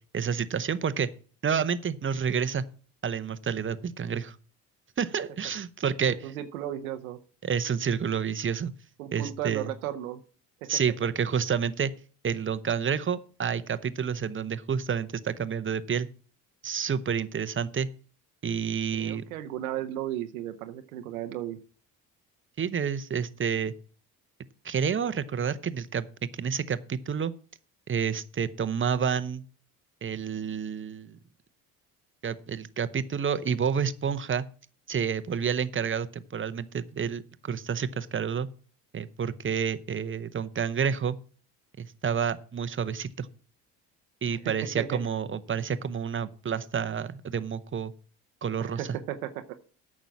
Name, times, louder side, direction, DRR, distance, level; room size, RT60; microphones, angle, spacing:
voice 1, 0.1-1.1 1.4-2.6 3.0-4.4 5.0-6.2 7.4-8.7 9.1-9.7 10.7-11.9 12.2-16.1 16.6-17.9 18.4-19.2 22.6-23.7 24.6-26.1 26.3-27.3 27.9-29.4 30.0-31.2 32.2-34.5 34.9-38.5 38.9-41.2 41.8-43.3 44.2-47.9 48.4-49.0, right 7 dB, 30° right, 14 dB, 0.9 m, -29 dB
voice 2, 6.1-7.2 9.0-10.2 10.6-10.7 18.9-21.6 44.3-45.0 48.6-49.6, right 12 dB, 90° right, 9 dB, 0.8 m, -35 dB
9.0 x 6.3 x 7.2 m, 0.41 s
hypercardioid pair, 60°, 41 cm